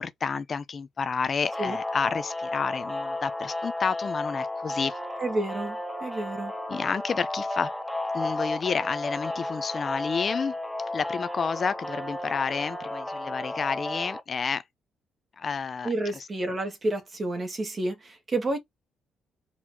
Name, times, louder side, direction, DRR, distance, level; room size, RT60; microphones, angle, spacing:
voice 1, 0.0-5.0 6.7-7.7 8.1-10.5 10.9-14.6 15.4-15.9, left 5 dB, 40° left, 0.6 m, -30 dB
sound 1, 1.4-14.2, left 2 dB, 5° left, 0.8 m, -33 dB
voice 2, 5.2-6.5 15.8-18.6, right 2 dB, 35° right, 2.0 m, -30 dB
4.4 x 4.2 x 2.8 m
cardioid pair, 90°, 0 cm